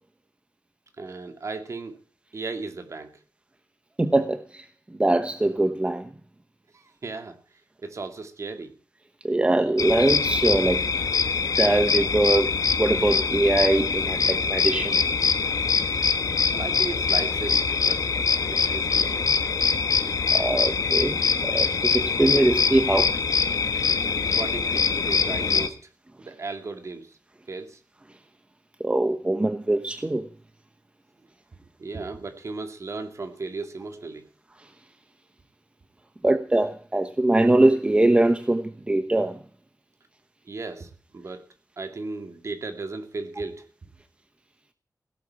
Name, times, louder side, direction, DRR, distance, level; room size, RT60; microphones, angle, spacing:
voice 1, 1.0-2.0 2.3-3.1 6.7-7.4 7.8-8.7 16.5-18.1 18.5-19.2 24.3-25.8 26.2-27.2 27.5-27.8 31.8-34.3 40.5-41.5 41.8-43.9, right 3 dB, 50° right, 2.3 m, -35 dB
voice 2, 4.0-4.6 5.0-6.1 9.2-10.9 11.4-12.5 12.8-15.0 20.3-23.2 28.8-30.2 36.2-39.4, right 2 dB, 20° right, 1.0 m, -22 dB
sound 1, 9.8-25.7, left 5 dB, 65° left, 1.3 m, -24 dB
17.0 x 8.2 x 8.5 m
wide cardioid pair, 135°, 6 cm